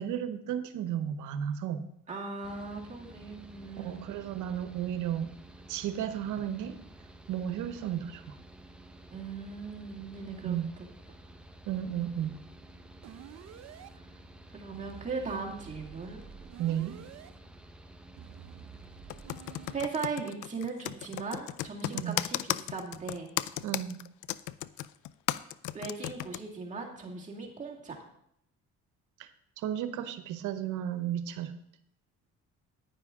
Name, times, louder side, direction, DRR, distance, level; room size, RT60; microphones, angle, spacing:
voice 1, 0.0-1.9 3.8-5.3 5.7-6.8 7.3-8.4 10.4-10.7 11.7-12.4 16.6-17.0 21.9-22.2 23.6-24.0 29.2-29.3 29.6-31.5, right 10 dB, 85° right, 10 dB, 1.0 m, -33 dB
voice 2, 2.1-4.1 9.1-10.6 14.5-16.2 19.7-23.3 25.7-28.0, right 4 dB, 25° right, -2 dB, 2.1 m, -38 dB
Mechanical fan, 2.4-19.9, right 1 dB, 5° right, 0.8 m, -52 dB
sound 1, 13.0-13.9 14.7-17.3 18.2-19.8, right 10 dB, 60° right, 0.7 m, -50 dB
Computer keyboard, 19.1-26.4, left 14 dB, 80° left, 0.5 m, -34 dB
10.0 x 9.8 x 3.7 m, 0.74 s
cardioid pair, 105°, 30 cm